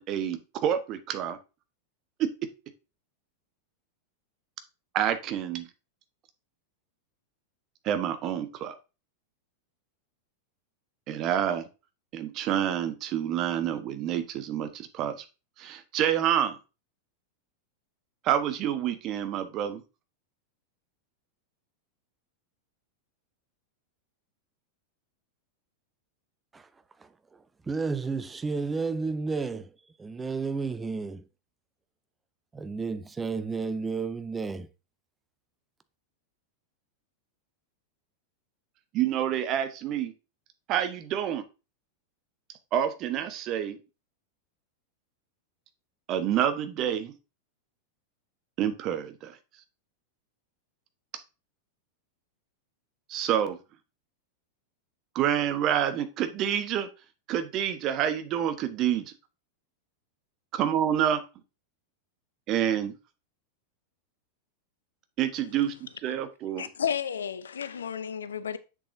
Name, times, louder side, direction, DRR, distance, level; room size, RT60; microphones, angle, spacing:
voice 1, 0.0-1.4 2.2-2.3 4.9-5.7 7.8-8.7 11.1-11.7 12.1-15.2 15.6-16.6 18.2-19.8 38.9-40.1 40.7-41.4 42.7-43.8 46.1-47.1 48.6-49.4 53.1-53.6 55.1-56.9 57.3-59.1 60.5-61.2 62.5-62.9 65.2-66.7, right 10 dB, 35° right, 1.1 m, -28 dB
voice 2, 27.0-31.3 32.5-34.7, right 4 dB, 15° right, 0.6 m, -32 dB
voice 3, 66.6-68.6, left 8 dB, 70° left, 0.5 m, -32 dB
7.5 x 6.9 x 2.7 m
figure-of-eight pair, 90°, 0 cm